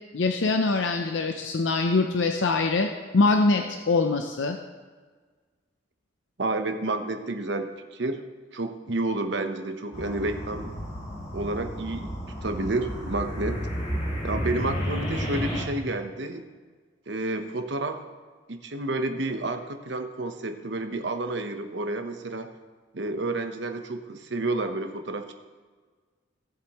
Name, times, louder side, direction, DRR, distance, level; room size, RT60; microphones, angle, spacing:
voice 1, 0.1-4.6, left 3 dB, 75° left, 5 dB, 0.6 m, -23 dB
voice 2, 6.4-8.2 8.5-10.8 11.3-12.2 12.4-13.7 14.2-16.4 17.1-18.0 18.5-22.5 22.9-25.3, right 2 dB, 65° right, 6 dB, 1.0 m, -30 dB
sound 1, 9.9-15.6, equal, 35° left, 1.9 m, -32 dB
17.0 x 7.7 x 3.0 m, 1.5 s
head